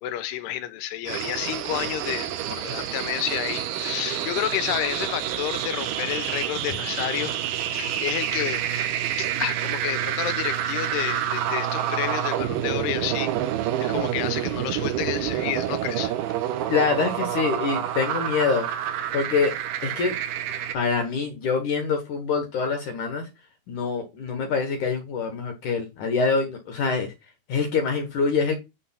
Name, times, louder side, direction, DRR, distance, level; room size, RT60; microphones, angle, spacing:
voice 1, 0.0-7.3 7.7-13.3 13.8-16.1, left 13 dB, 80° left, 2.9 m, -30 dB
sound 1, 1.1-20.8, right 11 dB, 75° right, 2.7 m, -28 dB
voice 2, 16.7-18.7 19.1-19.5 19.8-20.2 20.7-23.3 23.7-27.1 27.5-28.5, left 5 dB, 60° left, 2.2 m, -25 dB
9.8 x 3.3 x 5.6 m
omnidirectional pair, 4.7 m